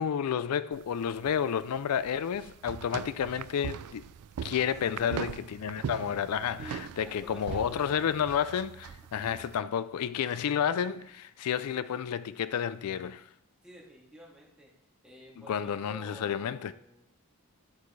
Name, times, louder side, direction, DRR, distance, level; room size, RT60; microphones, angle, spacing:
voice 1, 0.0-4.1 4.4-13.3 15.5-16.7, left 8 dB, 85° left, 0.4 m, -31 dB
sound 1, 0.7-9.6, right 8 dB, 90° right, 0.4 m, -41 dB
voice 2, 4.6-5.2 6.6-8.1 13.6-14.7 15.0-17.1, right 1 dB, 5° right, 2.3 m, -51 dB
12.5 x 8.1 x 3.2 m
head